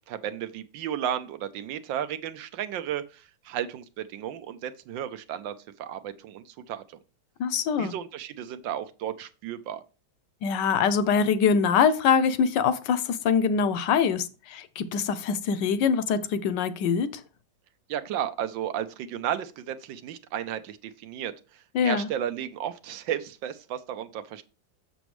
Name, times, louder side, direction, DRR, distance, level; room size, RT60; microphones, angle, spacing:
voice 1, 0.1-7.0 7.8-9.8 17.9-24.4, right 10 dB, 75° right, 1.3 m, -33 dB
voice 2, 7.4-7.9 10.4-17.2 21.7-22.1, left 6 dB, 75° left, 1.1 m, -24 dB
7.0 x 6.9 x 3.1 m
omnidirectional pair, 2.1 m